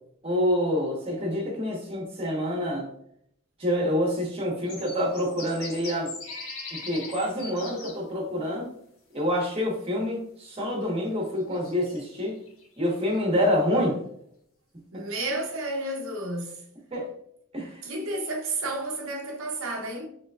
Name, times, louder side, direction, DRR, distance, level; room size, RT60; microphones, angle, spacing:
voice 1, 0.2-2.9 3.6-6.1 6.9-8.7 9.1-12.4 12.8-14.0 16.9-17.1 17.5-17.8, equal, 25° right, 1.2 m, -27 dB
sound 1, 4.6-8.0 8.9-9.0 10.8-10.9 11.4-13.0 13.4-13.5, left 3 dB, 75° left, 1.7 m, -41 dB
voice 2, 14.9-16.6 17.8-20.1, right 2 dB, 75° right, 0.8 m, -31 dB
5.2 x 3.1 x 2.4 m
head